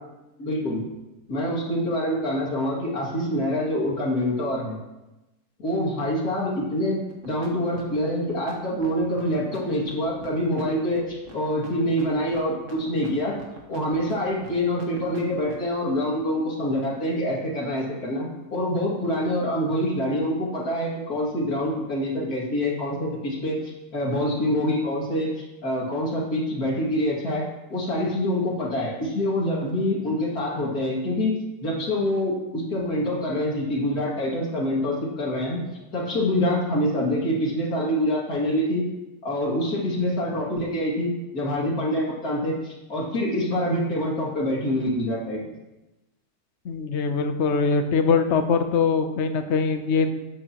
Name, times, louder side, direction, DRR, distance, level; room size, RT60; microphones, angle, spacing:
voice 1, 0.4-0.8 1.3-4.8 5.6-11.1 11.3-13.4 13.7-23.6 23.9-25.3 25.6-35.6 35.9-38.8 39.2-45.5, left 1 dB, 65° left, -4 dB, 3.0 m, -26 dB
sound 1, 7.1-7.5 7.7-15.7, right 4 dB, 50° right, 1.8 m, -43 dB
voice 2, 46.6-50.1, left 5 dB, 50° left, 7 dB, 1.0 m, -22 dB
13.0 x 9.1 x 3.0 m, 1.0 s
omnidirectional pair, 1.7 m